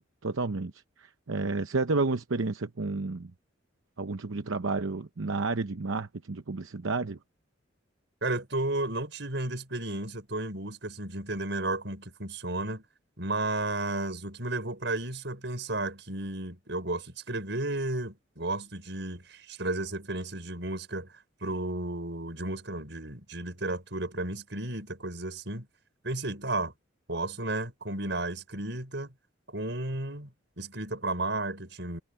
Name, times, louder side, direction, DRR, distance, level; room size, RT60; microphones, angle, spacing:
voice 1, 0.0-3.3 4.0-7.2, right 3 dB, 85° right, 0.8 m, -31 dB
voice 2, 8.2-12.8 13.2-21.1 21.4-25.7 26.0-26.7 27.1-29.1 29.5-30.3 30.6-32.0, right 2 dB, 65° right, 5.5 m, -33 dB
head